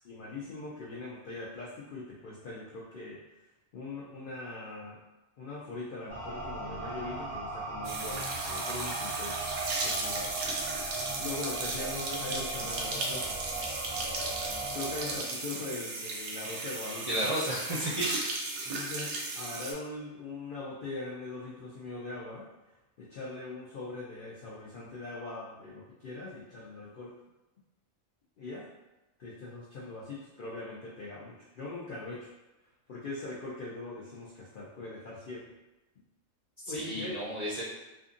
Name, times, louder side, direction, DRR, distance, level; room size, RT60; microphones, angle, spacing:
voice 1, 0.0-3.2 3.7-5.0 5.4-9.3 9.8-10.3 11.1-13.5 14.7-17.2 18.6-22.5 23.0-27.1 28.4-28.7 29.2-32.3 32.9-35.6 36.7-37.3, left 2 dB, 75° left, -6 dB, 0.4 m, -41 dB
sound 1, 6.1-15.1, right 2 dB, ahead, 0.6 m, -38 dB
sound 2, 7.8-19.7, right 2 dB, 90° right, 1.0 m, -35 dB
voice 2, 17.0-18.1 36.7-37.6, right 1 dB, 45° right, -10 dB, 0.5 m, -32 dB
2.5 x 2.4 x 2.5 m, 1.0 s
omnidirectional pair, 1.4 m